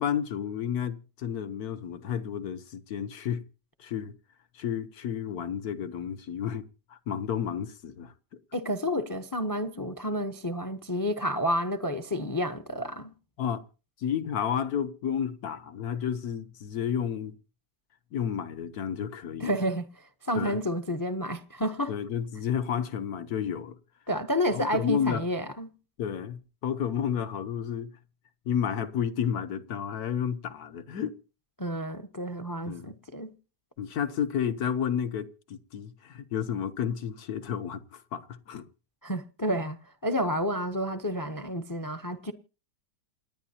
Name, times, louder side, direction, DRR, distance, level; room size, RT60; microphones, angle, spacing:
voice 1, 0.0-3.4 3.8-4.1 4.5-8.1 13.4-13.6 14.0-17.4 18.1-19.5 20.3-20.6 21.9-23.8 24.5-25.2 26.0-27.9 28.4-31.2 32.6-32.9 33.8-38.7, left 8 dB, 65° left, 1.4 m, -31 dB
voice 2, 8.5-13.1 19.4-21.9 24.1-25.7 31.6-33.3 39.0-42.3, equal, 20° left, 0.5 m, -30 dB
28.0 x 9.7 x 2.8 m
omnidirectional pair, 1.8 m